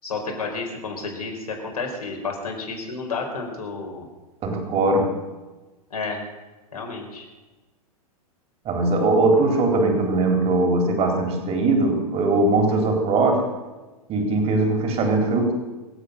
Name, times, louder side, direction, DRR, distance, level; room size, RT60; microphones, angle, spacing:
voice 1, 0.0-4.1 5.9-6.2 6.7-7.3, left 4 dB, 75° left, 1 dB, 4.9 m, -31 dB
voice 2, 4.4-5.1 8.7-13.4 14.1-15.5, right 2 dB, 30° right, 3 dB, 3.8 m, -20 dB
25.0 x 8.5 x 6.7 m, 1.2 s
figure-of-eight pair, 100°, 19 cm